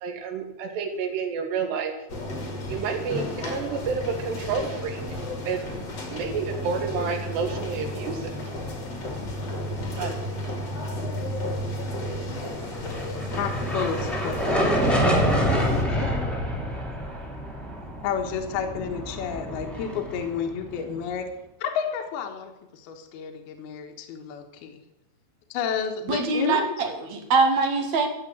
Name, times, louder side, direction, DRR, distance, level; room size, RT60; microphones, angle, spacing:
voice 1, 0.0-1.9 2.7-5.0 5.5-8.3 10.0-10.2, right 5 dB, 70° right, 5 dB, 3.6 m, -30 dB
sound 1, 2.1-15.8, left 1 dB, 35° left, 2.1 m, -33 dB
sound 2, 12.6-21.0, equal, ahead, 1.8 m, -27 dB
voice 2, 13.4-15.5 15.9-16.3 18.0-21.3 21.6-24.8 25.5-26.7, left 7 dB, 65° left, 4 dB, 3.1 m, -31 dB
voice 3, 26.1-28.1, right 4 dB, 50° right, 5 dB, 2.3 m, -23 dB
14.0 x 8.3 x 8.2 m, 0.95 s
omnidirectional pair, 5.2 m